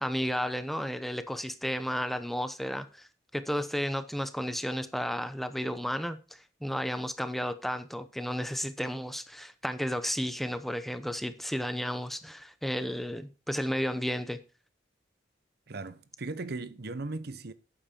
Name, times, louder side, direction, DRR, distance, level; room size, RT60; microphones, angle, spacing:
voice 1, 0.0-3.1 3.3-14.4, equal, ahead, 0.8 m, -33 dB
voice 2, 15.7-17.5, right 3 dB, 60° right, 0.9 m, -37 dB
12.0 x 9.0 x 4.4 m
head